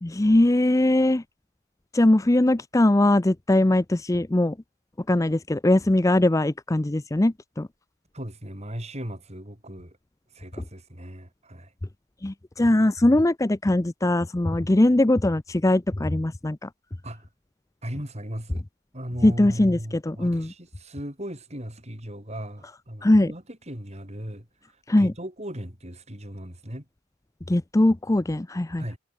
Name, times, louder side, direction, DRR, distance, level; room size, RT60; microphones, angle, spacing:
voice 1, 0.0-1.2 1.9-4.5 5.1-7.7 12.2-16.7 19.2-20.5 23.0-23.3 24.9-25.1 27.5-29.0, left 1 dB, 15° left, 0.5 m, -21 dB
voice 2, 8.1-10.0 10.3-11.7 17.0-17.2 17.8-18.6 18.9-24.5 24.9-26.8 28.8-29.0, equal, 30° right, 6.5 m, -37 dB
head